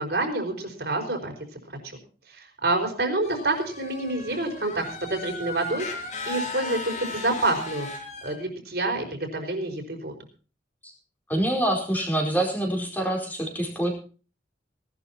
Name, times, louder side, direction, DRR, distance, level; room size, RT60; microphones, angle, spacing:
voice 1, 0.0-1.3 2.3-7.9 8.2-10.1, right 2 dB, 60° right, 2 dB, 4.8 m, -28 dB
sound 1, 3.2-8.4, left 2 dB, 40° left, 4.3 m, -36 dB
voice 2, 11.3-13.9, right 1 dB, 10° left, 1 dB, 4.7 m, -25 dB
19.0 x 12.0 x 4.3 m, 0.38 s
head